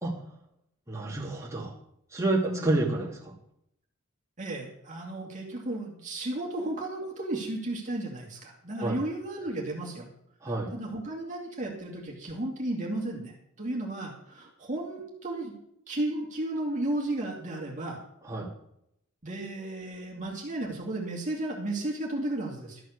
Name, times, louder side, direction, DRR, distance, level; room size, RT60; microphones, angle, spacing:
voice 1, 0.9-1.7 2.1-3.3 8.8-9.0 10.4-10.7 18.2-18.5, right 2 dB, 15° right, -4 dB, 2.6 m, -29 dB
voice 2, 4.4-10.1 10.5-15.6 15.9-18.0 19.2-22.8, right 1 dB, 35° right, -1 dB, 2.4 m, -34 dB
13.0 x 7.7 x 6.6 m, 0.75 s
head